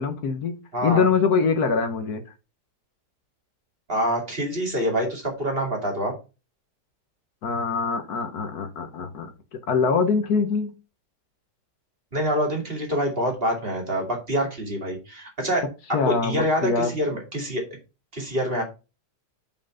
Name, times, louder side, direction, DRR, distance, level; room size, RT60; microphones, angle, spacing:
voice 1, 0.0-2.2 7.4-10.7 15.9-16.9, left 5 dB, 65° left, 1.5 m, -24 dB
voice 2, 0.7-1.0 3.9-6.1 12.1-15.6 16.0-17.6 18.1-18.6, equal, 35° right, 2.5 m, -26 dB
5.6 x 5.2 x 5.5 m
omnidirectional pair, 1.8 m